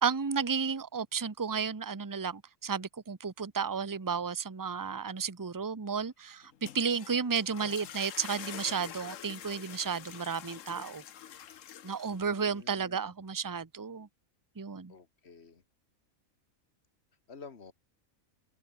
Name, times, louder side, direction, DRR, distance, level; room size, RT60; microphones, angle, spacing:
voice 1, 0.0-11.0 11.8-14.1 14.6-14.9, right 6 dB, 15° right, 0.8 m, -33 dB
sound 1, 6.4-12.5, left 10 dB, 70° left, 1.2 m, -46 dB
voice 2, 12.2-13.1 14.9-15.6 17.3-17.7, left 5 dB, 50° left, 2.1 m, -51 dB
omnidirectional pair, 1.4 m